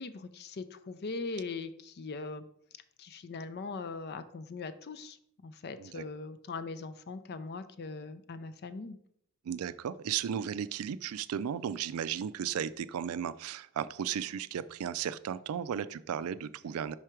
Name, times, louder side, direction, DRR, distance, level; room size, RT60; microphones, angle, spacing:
voice 1, 0.0-2.4 3.0-5.2 5.4-9.0, left 3 dB, 50° left, 12 dB, 0.5 m, -40 dB
voice 2, 9.4-17.0, right 8 dB, 85° right, 16 dB, 0.3 m, -35 dB
5.6 x 4.8 x 4.5 m, 0.70 s
head